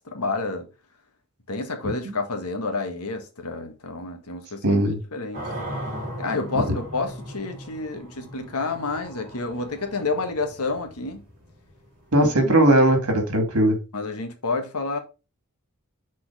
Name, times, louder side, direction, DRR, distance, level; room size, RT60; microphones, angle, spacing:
voice 1, 0.0-0.7 1.5-4.8 5.1-5.5 6.2-11.2 12.2-12.5 13.9-15.0, left 3 dB, 85° left, 1.6 m, -29 dB
voice 2, 4.6-5.0 6.5-6.6 12.1-13.8, right 1 dB, 75° right, 2.4 m, -19 dB
sound 1, 5.3-12.2, equal, 40° right, 3.2 m, -38 dB
6.3 x 4.2 x 4.9 m
head